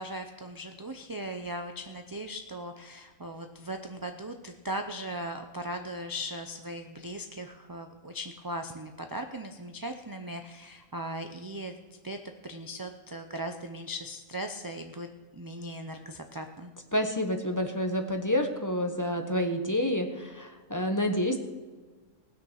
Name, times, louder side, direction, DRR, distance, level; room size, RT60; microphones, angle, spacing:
voice 1, 0.0-12.2 12.4-16.7, right 1 dB, 30° right, 5 dB, 0.4 m, -38 dB
voice 2, 16.9-21.4, equal, 15° left, 4 dB, 1.0 m, -28 dB
19.0 x 6.4 x 6.4 m, 1.3 s
omnidirectional pair, 1.4 m